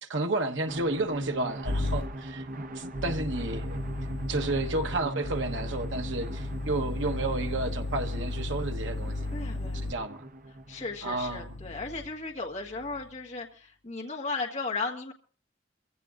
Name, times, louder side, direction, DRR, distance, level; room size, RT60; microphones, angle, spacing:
voice 1, 0.0-3.8 4.3-9.3 9.8-10.3 11.0-11.6, right 2 dB, 80° right, 1.1 m, -32 dB
sound 1, 0.7-11.9, right 1 dB, 45° right, 0.8 m, -40 dB
sound 2, 1.6-2.0 2.9-9.9 11.0-12.2 12.7-13.1, left 2 dB, 75° left, 0.7 m, -35 dB
voice 2, 9.3-9.8 10.7-15.1, left 3 dB, 40° left, 1.5 m, -35 dB
24.0 x 15.5 x 2.5 m
head